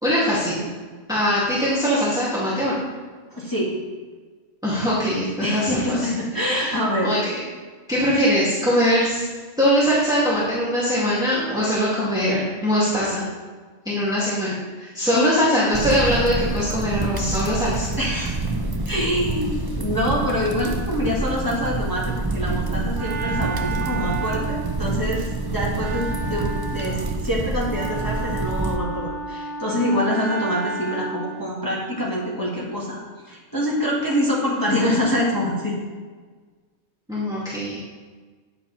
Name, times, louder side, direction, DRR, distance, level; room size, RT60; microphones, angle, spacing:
voice 1, 0.0-0.7 1.1-2.8 4.6-6.1 6.4-6.8 7.0-7.4 7.9-9.3 9.6-13.2 13.9-17.9 37.1-37.8, equal, 5° right, -10 dB, 2.2 m, -22 dB
voice 2, 3.3-3.8 5.4-7.1 15.1-15.4 18.0-18.4 18.9-35.8, equal, 15° left, -6 dB, 1.9 m, -25 dB
sound 1, 15.7-28.8, right 2 dB, 35° right, 0.3 m, -27 dB
Wind instrument woodwind instrument, 22.4-31.5, right 4 dB, 65° right, 1.3 m, -33 dB
10.0 x 7.4 x 4.2 m, 1.5 s
omnidirectional pair, 1.4 m